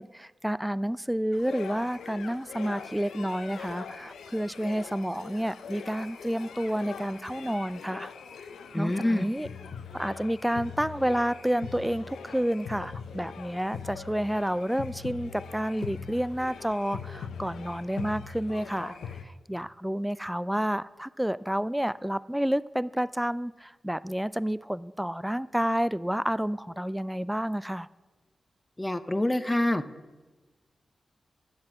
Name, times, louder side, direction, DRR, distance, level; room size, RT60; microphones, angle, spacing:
voice 1, 0.0-8.1 8.7-9.5 9.9-27.9, equal, 5° right, 19 dB, 0.3 m, -30 dB
sound 1, 1.3-19.2, left 6 dB, 85° left, 0.6 m, -42 dB
voice 2, 8.7-9.3 28.8-29.8, left 1 dB, 20° left, 13 dB, 0.7 m, -26 dB
9.7 x 7.5 x 5.9 m, 1.3 s
supercardioid pair, 40°, 0 cm